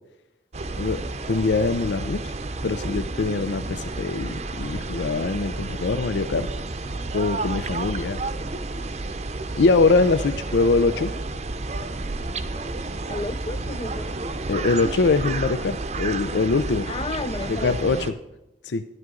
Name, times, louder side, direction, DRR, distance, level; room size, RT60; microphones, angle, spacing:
Wiler Weiher auf einem Stein, 0.5-18.1, right 2 dB, 40° right, 0.6 m, -31 dB
voice 1, 0.8-2.3 2.6-6.5 7.1-8.2 9.6-11.1 14.5-16.9 17.5-18.1 18.6-18.8, left 3 dB, 85° left, 0.5 m, -23 dB
voice 2, 13.1-14.1 16.9-18.1, left 3 dB, 30° left, 0.3 m, -32 dB
12.5 x 10.5 x 3.8 m
head